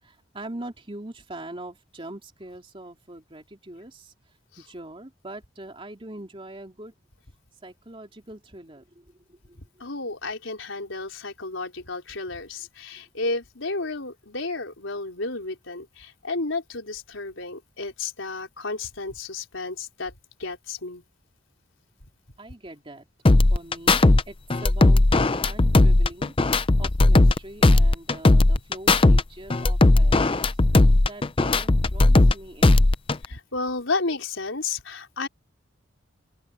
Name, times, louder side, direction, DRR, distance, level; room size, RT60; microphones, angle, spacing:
voice 1, 0.0-4.1 4.6-6.9 7.6-9.0 9.3-9.4 22.4-23.1 23.5-26.3 26.8-30.5 31.0-32.8, right 1 dB, 30° right, 3.0 m, -42 dB
voice 2, 9.8-20.1 20.4-21.0 33.3-35.3, left 3 dB, 90° left, 4.3 m, -32 dB
sound 1, 23.3-24.2 24.5-27.4 27.6-29.2 29.5-32.3 32.6-33.3, left 2 dB, 30° left, 0.6 m, -17 dB
open air
head